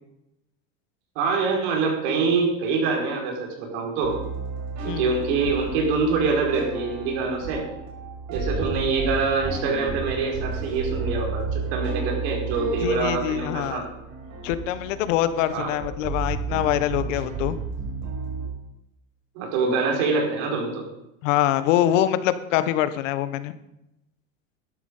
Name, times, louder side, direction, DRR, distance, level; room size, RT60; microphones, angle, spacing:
voice 1, 1.2-4.2 4.8-7.6 8.3-13.9 15.5-15.7 19.4-20.8, right 4 dB, 60° right, 1 dB, 5.4 m, -25 dB
sound 1, 4.0-18.5, right 4 dB, 45° right, 4.7 m, -32 dB
voice 2, 12.8-13.8 14.4-17.6 21.2-23.5, left 12 dB, 70° left, 13 dB, 1.3 m, -24 dB
12.5 x 12.5 x 5.5 m, 0.87 s
supercardioid pair, 135°, 39 cm